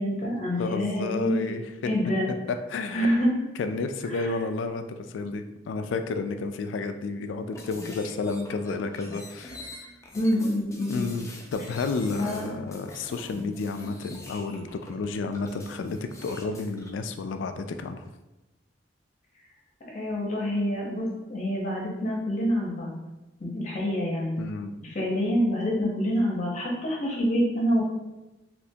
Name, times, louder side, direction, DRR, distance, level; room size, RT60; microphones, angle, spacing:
voice 1, 0.0-1.5 1.9-2.3 2.9-3.3 4.1-4.3 10.1-11.1 12.2-12.6 19.9-22.9 23.4-24.4 24.8-27.8, equal, 40° left, -3 dB, 0.7 m, -27 dB
voice 2, 0.6-1.6 2.7-3.1 3.6-9.6 10.9-18.1 24.4-24.7, left 3 dB, 85° left, 8 dB, 0.3 m, -31 dB
sound 1, 7.5-16.9, left 1 dB, 15° left, 0.4 m, -45 dB
3.3 x 2.9 x 2.7 m, 1.0 s
head